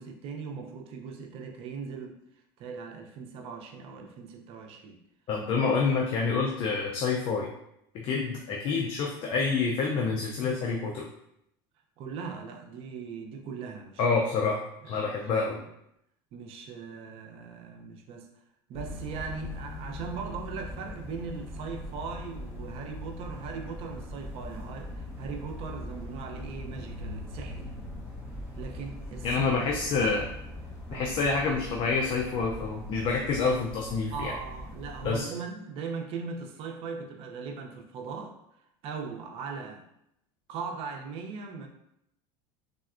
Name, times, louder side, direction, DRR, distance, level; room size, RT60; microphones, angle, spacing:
voice 1, 0.0-2.2 2.6-5.0 5.6-5.8 12.0-14.2 14.9-15.7 16.3-18.3 18.7-27.7 28.6-29.4 30.9-31.1 34.1-39.8 40.5-41.7, right 5 dB, 50° right, 3 dB, 0.5 m, -39 dB
voice 2, 5.3-7.5 7.9-11.1 14.0-15.6 29.2-30.3 30.9-34.3 35.0-35.3, left 4 dB, 45° left, 0 dB, 0.4 m, -27 dB
sound 1, 18.7-35.2, left 1 dB, 20° left, 0.9 m, -41 dB
3.5 x 2.1 x 2.4 m, 0.78 s
supercardioid pair, 115°, 13 cm